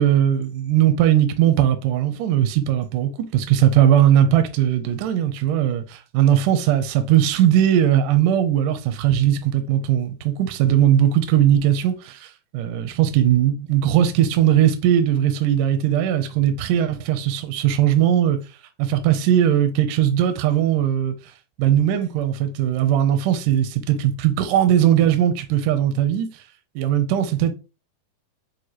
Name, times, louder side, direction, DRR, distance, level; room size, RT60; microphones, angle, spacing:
voice 1, 0.0-12.3 12.5-18.4 18.8-21.1 21.6-26.3 26.8-27.5, right 10 dB, 80° right, 1.9 m, -19 dB
6.5 x 2.3 x 2.9 m
omnidirectional pair, 4.2 m